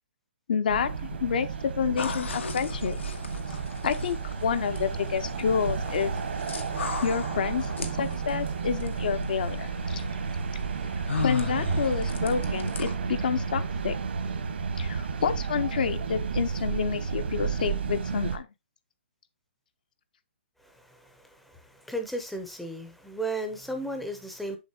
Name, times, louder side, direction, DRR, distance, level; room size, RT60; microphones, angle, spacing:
voice 1, 0.5-0.9 1.2-1.5 1.8-3.0 3.8-6.1 7.0-10.0 11.2-14.0 14.2-14.3 14.8-18.5, left 7 dB, 45° left, 0.7 m, -29 dB
sound 1, 0.7-18.4, right 5 dB, 65° right, 1.4 m, -32 dB
sound 2, 2.0-13.0, left 5 dB, 90° left, 1.3 m, -37 dB
voice 2, 20.6-24.6, right 1 dB, ahead, 0.6 m, -35 dB
7.4 x 5.3 x 2.8 m
hypercardioid pair, 170°, 6 cm